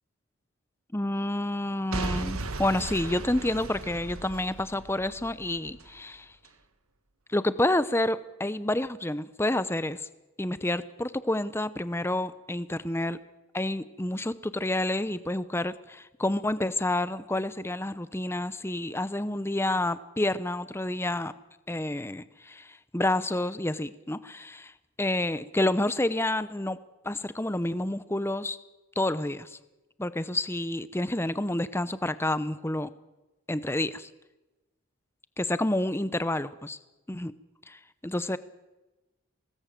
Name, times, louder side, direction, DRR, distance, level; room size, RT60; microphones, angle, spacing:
voice 1, 0.9-6.3 7.3-10.1 10.4-13.2 13.5-21.3 21.7-24.7 25.0-26.8 27.0-28.6 29.0-29.6 30.0-32.9 33.5-34.1 35.4-36.8 37.1-37.3 37.7-38.4, left 1 dB, 10° left, 14 dB, 0.7 m, -29 dB
Boom / Shatter / Crushing, 1.9-5.9 6.4-6.5, right 2 dB, 80° right, 1.6 m, -36 dB
24.0 x 19.0 x 7.6 m, 1.1 s
head